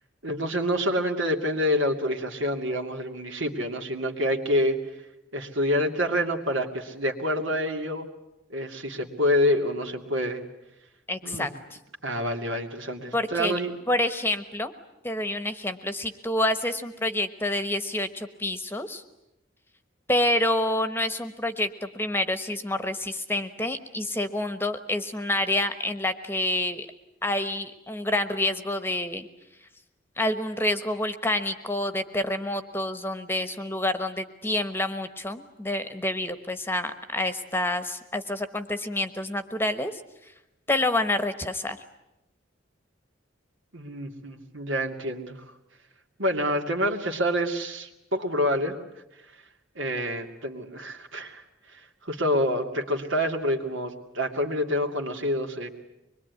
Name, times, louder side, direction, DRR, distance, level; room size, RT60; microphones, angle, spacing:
voice 1, 0.2-4.8 5.3-8.1 8.5-10.4 11.2-11.5 12.0-13.8 43.7-45.4 46.2-48.8 49.8-51.4 51.7-55.7, equal, 80° right, 4 dB, 2.6 m, -27 dB
voice 2, 11.1-11.5 13.1-13.6 13.9-14.7 15.0-19.0 20.1-26.9 27.2-29.3 30.2-40.0 40.7-41.8, left 1 dB, 10° left, 10 dB, 1.1 m, -28 dB
25.0 x 22.0 x 9.6 m, 0.89 s
head